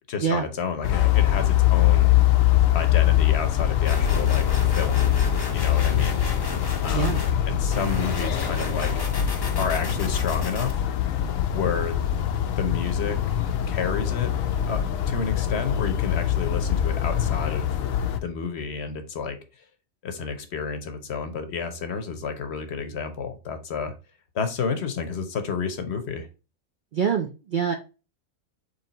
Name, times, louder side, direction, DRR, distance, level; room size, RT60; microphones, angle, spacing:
voice 1, 0.1-2.1 2.7-4.5 4.7-5.1 5.5-6.2 6.8-7.2 7.5-8.9 9.5-10.8 11.5-12.0 12.6-13.2 13.7-14.3 14.7-17.7 18.2-19.4 20.0-23.9 24.3-26.3, left 5 dB, 60° left, 8 dB, 0.9 m, -30 dB
sound 1, 0.8-18.2, left 11 dB, 90° left, 1.0 m, -23 dB
sound 2, 3.9-7.3 7.7-10.7, left 2 dB, 30° left, 0.5 m, -33 dB
voice 2, 26.9-27.8, right 7 dB, 60° right, 3 dB, 0.5 m, -25 dB
4.2 x 3.2 x 3.9 m, 0.31 s
omnidirectional pair, 1.4 m